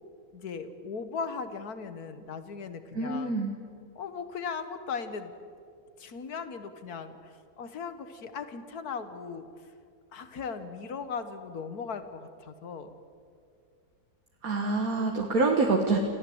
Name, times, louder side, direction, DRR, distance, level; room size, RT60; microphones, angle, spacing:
voice 1, 0.3-3.3 4.0-5.3 6.0-9.5 10.1-12.9, left 5 dB, 65° left, 10 dB, 1.8 m, -38 dB
voice 2, 2.9-3.5 14.4-16.0, right 3 dB, 60° right, 2 dB, 1.9 m, -26 dB
27.5 x 15.0 x 7.9 m, 2.4 s
omnidirectional pair, 1.7 m